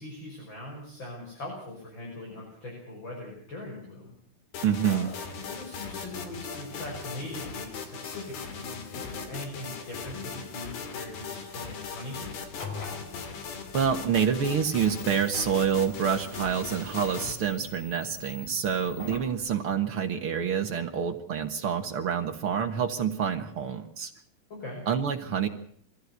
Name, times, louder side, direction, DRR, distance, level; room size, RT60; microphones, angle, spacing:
voice 1, 0.0-4.1 4.9-12.4 24.5-24.8, left 1 dB, 30° left, -1 dB, 6.3 m, -41 dB
sound 1, 4.5-17.3, left 5 dB, 70° left, 4.3 m, -39 dB
voice 2, 4.6-5.1 13.7-24.1 24.9-25.5, right 7 dB, 60° right, 6 dB, 1.4 m, -27 dB
sound 2, 12.4-19.4, left 3 dB, 50° left, 5.6 m, -44 dB
22.5 x 16.0 x 8.2 m, 0.65 s
omnidirectional pair, 4.4 m